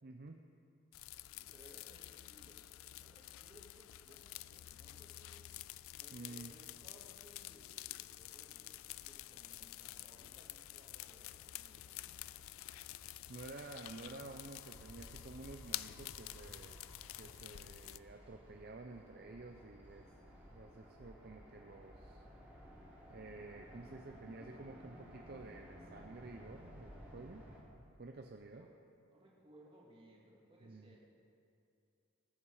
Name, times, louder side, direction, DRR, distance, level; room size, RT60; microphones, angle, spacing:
voice 1, 0.0-0.4 6.1-6.5 13.3-16.8 17.2-20.1 20.5-22.3 23.1-27.4 27.8-28.7 30.6-31.0, right 3 dB, 45° right, 4 dB, 0.6 m, -51 dB
sound 1, 0.9-18.0, left 15 dB, 75° left, 0.3 m, -50 dB
voice 2, 1.3-2.6 3.0-5.5 6.0-12.1 28.5-28.8 29.1-31.0, equal, 25° right, -3 dB, 2.2 m, -63 dB
sound 2, 8.4-27.6, equal, 10° right, 2.8 m, -58 dB
19.5 x 8.6 x 4.8 m, 2.6 s
head